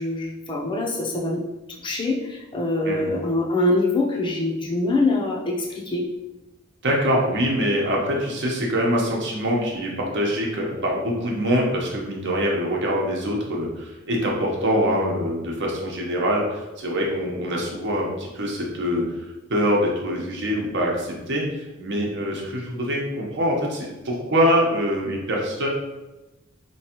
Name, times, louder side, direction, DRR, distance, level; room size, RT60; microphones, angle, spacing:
voice 1, 0.0-1.4 1.8-6.0, left 2 dB, 25° left, -1 dB, 0.6 m, -24 dB
voice 2, 6.8-19.0 19.5-25.7, equal, 60° right, -1 dB, 0.9 m, -24 dB
4.4 x 3.1 x 2.9 m, 1.1 s
head